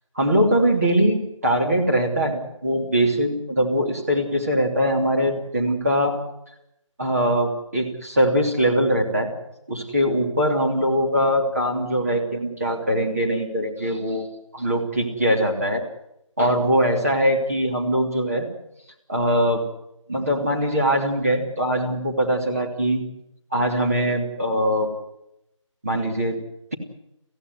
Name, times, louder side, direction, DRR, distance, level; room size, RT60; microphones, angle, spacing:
voice 1, 0.1-6.2 7.0-9.3 9.7-14.3 14.5-15.8 16.4-18.5 19.1-19.6 20.1-23.0 23.5-24.9 25.8-26.4, equal, 30° right, -1 dB, 3.1 m, -22 dB
25.5 x 16.0 x 9.3 m, 0.84 s
figure-of-eight pair, 175°, 17 cm